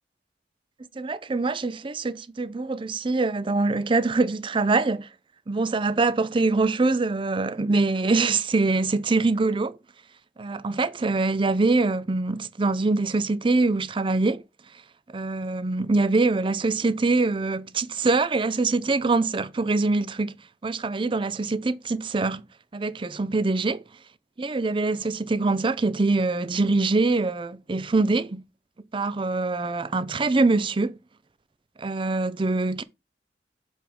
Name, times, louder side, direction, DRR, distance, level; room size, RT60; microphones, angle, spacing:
voice 1, 1.0-5.1 5.5-9.8 10.4-14.4 15.1-20.4 20.6-22.4 22.7-23.8 24.4-28.4 28.9-30.9 31.8-32.8, right 3 dB, 30° right, 0.5 m, -24 dB
7.7 x 3.5 x 5.2 m
head